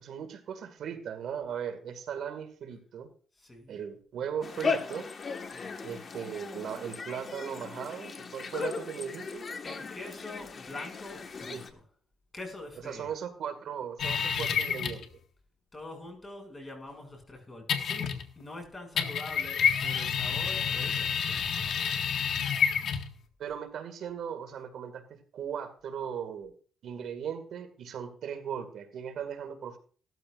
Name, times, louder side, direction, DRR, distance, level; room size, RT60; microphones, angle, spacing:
voice 1, 0.0-3.1 3.7-5.1 5.8-9.5 11.5-11.6 12.8-15.1 23.4-26.5 26.8-29.8, right 8 dB, 70° right, 2.2 m, -38 dB
voice 2, 3.4-3.8 5.5-5.7 9.6-11.8 12.3-13.1 14.5-14.6 15.7-21.8, left 2 dB, 20° left, 7.0 m, -44 dB
sound 1, 4.4-11.7, left 5 dB, 40° left, 1.7 m, -37 dB
sound 2, 14.0-15.1 17.7-18.4 19.0-23.2, left 7 dB, 65° left, 1.7 m, -29 dB
18.0 x 13.5 x 2.6 m
cardioid pair, 90°, 0 cm